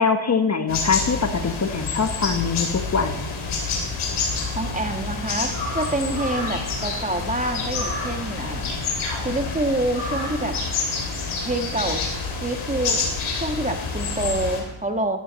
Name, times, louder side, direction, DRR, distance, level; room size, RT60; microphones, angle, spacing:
voice 1, 0.0-3.3, left 5 dB, 35° left, 8 dB, 1.0 m, -23 dB
sound 1, 0.7-14.6, left 4 dB, 85° left, 3.1 m, -28 dB
voice 2, 4.5-8.7 9.2-10.6 11.4-13.0 13.3-15.2, right 1 dB, 15° right, 5 dB, 1.5 m, -27 dB
sound 2, 5.5-10.5, left 1 dB, 70° left, 5.5 m, -34 dB
13.5 x 12.0 x 4.1 m, 0.96 s
cardioid pair, 65°, 48 cm